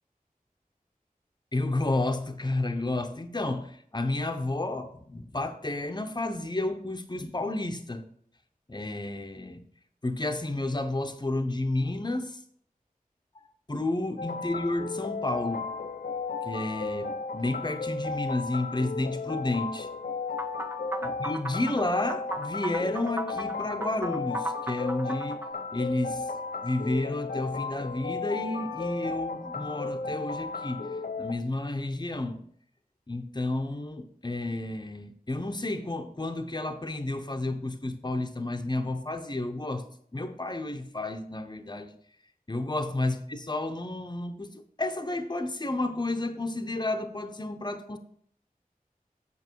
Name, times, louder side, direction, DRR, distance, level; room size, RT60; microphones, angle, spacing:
voice 1, 1.5-8.0 8.7-9.6 10.0-12.4 13.7-15.7 16.4-19.9 21.0-26.3 26.6-30.9 31.2-32.4 33.1-39.8 40.1-41.9 42.5-48.0, left 2 dB, 30° left, 0.8 m, -31 dB
sound 1, 14.2-31.3, left 4 dB, 90° left, 0.7 m, -34 dB
sound 2, 20.4-25.5, right 1 dB, 15° right, 0.7 m, -36 dB
8.2 x 5.9 x 4.5 m
wide cardioid pair, 45°, 15 cm